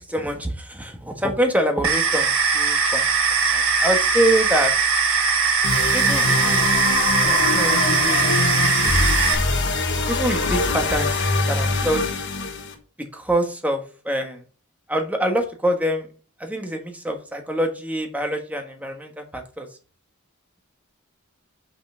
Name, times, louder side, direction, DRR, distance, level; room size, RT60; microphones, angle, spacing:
voice 1, 0.0-3.1 3.5-4.7 5.9-6.7 7.2-8.4 10.1-11.2 11.5-12.2 13.0-14.4 14.9-16.1 16.4-19.7, right 1 dB, 5° right, 4 dB, 1.4 m, -25 dB
sound 1, 1.8-9.3, right 5 dB, 65° right, 1.7 m, -20 dB
sound 2, 5.6-12.7, left 3 dB, 55° left, 1.6 m, -23 dB
5.9 x 5.7 x 5.6 m, 0.37 s
head